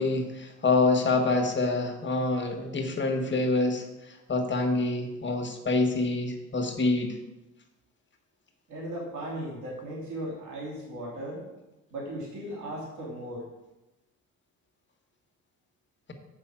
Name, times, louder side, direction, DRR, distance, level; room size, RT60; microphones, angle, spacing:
voice 1, 0.0-3.8 4.3-7.2, left 3 dB, 40° left, 4 dB, 1.4 m, -26 dB
voice 2, 8.7-11.4 11.9-13.4, right 1 dB, 75° right, -4 dB, 2.8 m, -37 dB
7.6 x 5.4 x 7.4 m, 1.0 s
cardioid pair, 90°, 30 cm